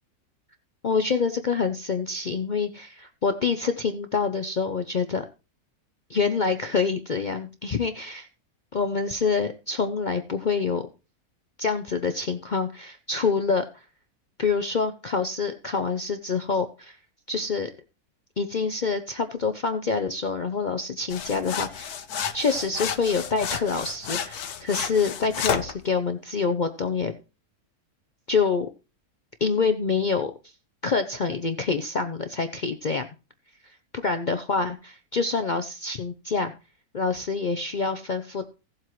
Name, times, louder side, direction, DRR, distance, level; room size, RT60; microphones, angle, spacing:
voice 1, 0.8-5.3 6.1-8.3 8.7-10.9 11.6-13.8 14.4-17.0 17.3-17.7 18.4-21.9 22.3-27.1 28.3-28.7 29.4-30.3 30.8-33.1 33.9-36.5 36.9-38.5, left 5 dB, 55° left, 8 dB, 0.5 m, -26 dB
sound 1, 21.1-25.8, left 8 dB, 80° left, 1.4 m, -31 dB
16.5 x 7.5 x 3.1 m, 0.31 s
omnidirectional pair, 1.6 m